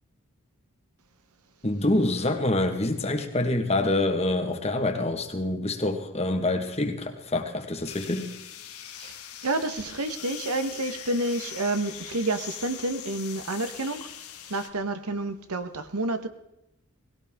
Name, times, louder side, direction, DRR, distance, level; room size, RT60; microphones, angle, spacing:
voice 1, 1.6-8.3, left 2 dB, 30° left, 1.5 m, -26 dB
sound 1, 7.8-14.7, left 10 dB, 80° left, 1.9 m, -41 dB
voice 2, 9.4-14.1 14.5-16.3, right 2 dB, 85° right, 1.3 m, -29 dB
19.5 x 17.5 x 3.7 m
head